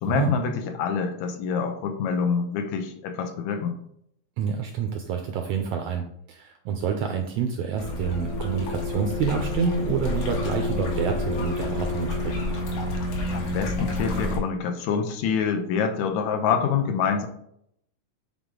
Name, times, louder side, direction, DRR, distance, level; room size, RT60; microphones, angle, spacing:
voice 1, 0.0-3.8 13.3-17.3, left 6 dB, 80° left, 6 dB, 2.0 m, -26 dB
voice 2, 4.4-12.4, right 6 dB, 85° right, 4 dB, 1.4 m, -28 dB
sound 1, 7.8-14.4, left 2 dB, 55° left, 2.1 m, -28 dB
8.2 x 3.8 x 3.7 m, 0.71 s
omnidirectional pair, 3.4 m